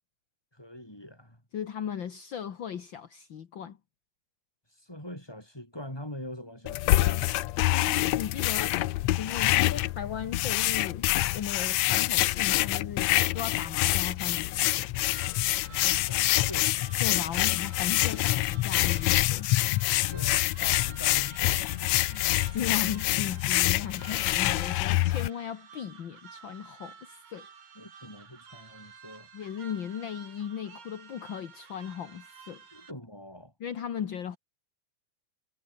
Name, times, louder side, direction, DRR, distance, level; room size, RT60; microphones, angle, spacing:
voice 1, 0.5-1.4 4.9-7.3 15.7-16.9 20.1-22.3 27.8-29.3 32.7-33.5, left 1 dB, 5° left, 7.4 m, -43 dB
voice 2, 1.5-3.8 7.7-14.9 17.0-19.5 22.5-27.5 29.3-32.6 33.6-34.4, left 8 dB, 50° left, 1.5 m, -37 dB
sound 1, 6.7-25.3, left 17 dB, 80° left, 1.6 m, -26 dB
sound 2, 15.1-32.9, right 6 dB, 70° right, 5.3 m, -51 dB
omnidirectional pair, 3.9 m